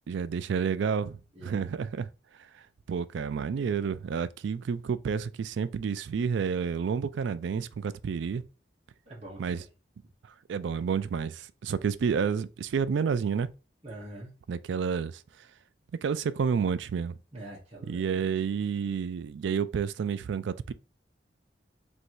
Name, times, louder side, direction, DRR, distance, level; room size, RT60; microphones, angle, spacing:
voice 1, 0.1-2.1 2.9-8.4 9.4-9.6 10.5-13.5 14.5-15.2 16.0-17.1 17.9-20.7, right 6 dB, 70° right, 0.3 m, -30 dB
voice 2, 1.3-1.7 9.1-9.6 13.8-14.3 17.3-18.3, right 1 dB, 35° right, 1.1 m, -44 dB
3.1 x 2.7 x 4.5 m
head